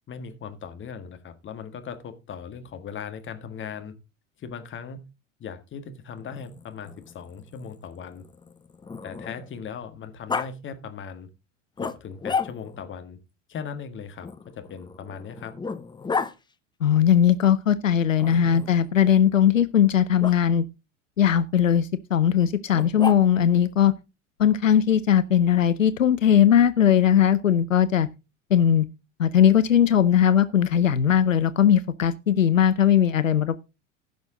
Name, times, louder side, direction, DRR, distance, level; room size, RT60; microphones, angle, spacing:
voice 1, 0.1-3.9 4.4-5.1 5.4-8.2 9.0-11.3 11.8-13.2 13.5-15.5, left 6 dB, 30° left, 1.7 m, -38 dB
Growling, 6.2-9.6 10.3-10.5 11.8-12.9 14.2-16.3 18.2-18.9 20.2-20.4 22.7-23.5, left 5 dB, 10° left, 0.8 m, -33 dB
voice 2, 16.8-20.6 21.2-23.9 24.4-28.1 28.5-28.8 29.2-33.6, left 9 dB, 90° left, 0.6 m, -19 dB
15.5 x 6.2 x 3.8 m
hypercardioid pair, 80°, 38 cm